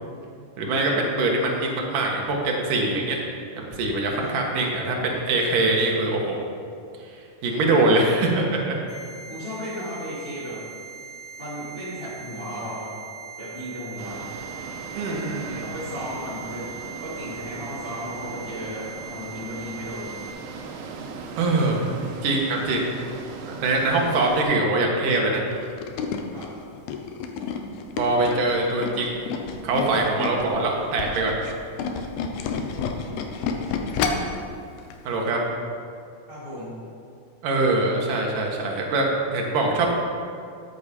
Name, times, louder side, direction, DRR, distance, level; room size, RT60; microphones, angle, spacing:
voice 1, 0.6-3.2 3.6-6.4 7.4-8.8 15.0-15.6 21.4-21.8 22.2-22.9 23.4-25.4 28.0-29.3 29.6-31.4 35.1-35.4 37.4-39.9, right 2 dB, 60° right, 0 dB, 2.8 m, -23 dB
sound 1, 8.9-20.3, right 6 dB, 35° left, 4.1 m, -41 dB
voice 2, 9.3-10.6 11.4-12.9 13.4-14.2 15.6-16.6 17.0-20.1 21.8-22.1 26.3-26.5 36.3-36.7, equal, 15° left, -10 dB, 3.1 m, -35 dB
sound 2, 14.0-24.4, right 5 dB, 85° right, 3.0 m, -39 dB
Tools, 25.5-30.5 30.9-34.4 34.8-35.0 35.3-35.4, left 5 dB, 75° left, 2.5 m, -29 dB
13.0 x 8.7 x 5.3 m, 2.4 s
omnidirectional pair, 4.8 m